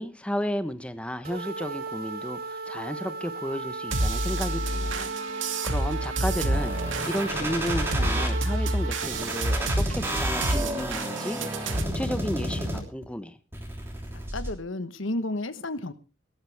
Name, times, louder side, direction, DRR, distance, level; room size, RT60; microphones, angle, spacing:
voice 1, 0.0-13.4, equal, 5° left, 1.0 m, -33 dB
sound 1, 1.2-9.7, right 3 dB, 50° right, 3.0 m, -36 dB
sound 2, 3.9-11.8, right 1 dB, 70° right, 2.3 m, -29 dB
sound 3, 6.5-8.3 9.0-13.0 13.5-14.5, right 1 dB, 10° right, 3.4 m, -31 dB
voice 2, 14.3-15.9, left 2 dB, 75° left, 1.2 m, -31 dB
19.0 x 13.0 x 3.5 m
head